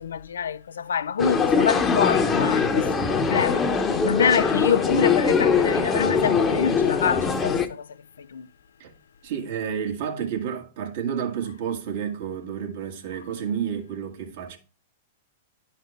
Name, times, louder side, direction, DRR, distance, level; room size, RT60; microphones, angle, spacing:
voice 1, 0.0-7.9 8.2-8.5, left 7 dB, 85° left, 0.4 m, -26 dB
sound 1, 1.2-7.7, left 5 dB, 20° left, 0.9 m, -22 dB
voice 2, 9.2-14.6, right 8 dB, 65° right, 1.6 m, -30 dB
11.0 x 4.1 x 3.2 m
hypercardioid pair, 115°, 0 cm